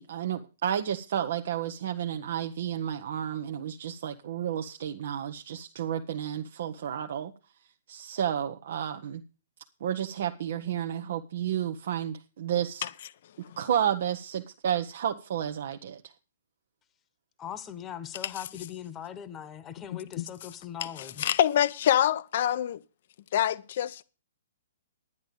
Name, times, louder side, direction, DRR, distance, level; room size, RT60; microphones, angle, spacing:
voice 1, 0.0-7.3 7.9-9.2 9.8-12.9 13.4-16.0, right 9 dB, 60° right, 0.8 m, -31 dB
voice 2, 17.4-21.3, left 9 dB, 20° left, 1.1 m, -40 dB
voice 3, 21.2-22.8 23.3-24.0, left 11 dB, 55° left, 0.6 m, -25 dB
11.0 x 10.5 x 5.3 m
figure-of-eight pair, 125°, 0 cm